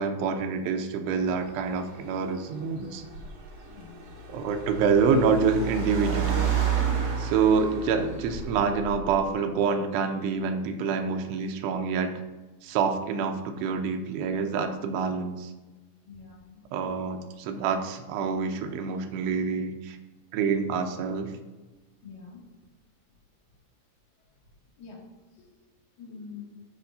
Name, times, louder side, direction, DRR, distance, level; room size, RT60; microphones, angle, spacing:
voice 1, 0.0-3.0 4.3-6.4 7.2-12.1 12.6-15.5 16.7-20.0 20.3-21.3, right 5 dB, 80° right, 5 dB, 2.6 m, -27 dB
Car, 1.3-9.2, right 8 dB, 50° right, 2.6 m, -32 dB
voice 2, 3.6-4.0 16.0-16.6 22.0-22.4 24.8-25.0 26.0-26.5, left 5 dB, 55° left, -4 dB, 3.2 m, -45 dB
14.0 x 5.1 x 2.6 m, 1.2 s
omnidirectional pair, 5.1 m